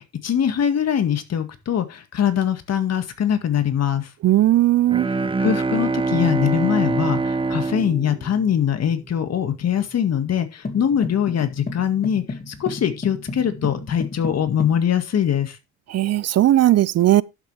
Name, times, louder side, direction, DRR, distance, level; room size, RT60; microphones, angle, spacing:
voice 1, 0.0-4.1 5.4-15.6, left 9 dB, 55° left, 1.9 m, -22 dB
voice 2, 4.2-5.1 15.9-17.2, right 13 dB, 55° right, 0.5 m, -17 dB
Bowed string instrument, 4.9-9.2, right 3 dB, 15° right, 0.7 m, -24 dB
sound 1, 10.6-14.8, left 3 dB, 30° left, 2.2 m, -33 dB
12.0 x 7.1 x 3.3 m
cardioid pair, 90°, 30 cm